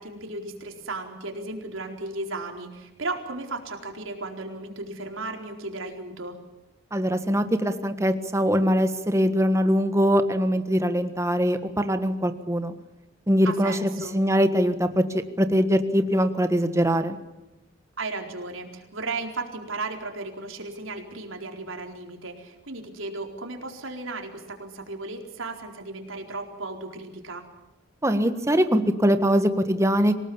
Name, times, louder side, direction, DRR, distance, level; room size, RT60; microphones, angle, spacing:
voice 1, 0.0-6.4 13.4-14.2 18.0-27.4, right 3 dB, 85° right, 3 dB, 4.3 m, -35 dB
voice 2, 6.9-12.7 13.3-17.2 28.0-30.2, equal, 15° right, 9 dB, 1.5 m, -22 dB
27.0 x 18.5 x 7.2 m, 1.0 s
head